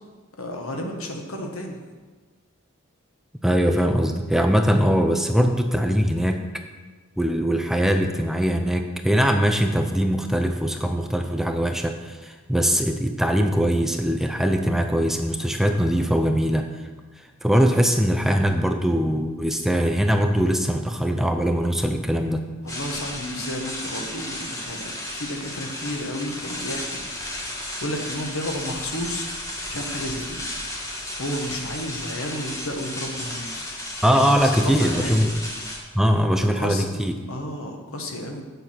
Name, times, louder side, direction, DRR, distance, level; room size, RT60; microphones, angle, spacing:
voice 1, 0.4-1.8 22.6-27.0 27.8-29.3 29.7-30.4 31.2-33.5 34.2-35.2 36.6-36.9 37.3-38.4, left 1 dB, 75° left, 3 dB, 1.5 m, -32 dB
voice 2, 3.4-6.4 7.2-16.7 17.4-22.4 34.0-35.3 35.9-37.1, equal, ahead, 5 dB, 0.5 m, -21 dB
sound 1, 22.7-35.8, left 1 dB, 15° left, 1.4 m, -33 dB
8.3 x 7.2 x 5.9 m, 1.4 s
head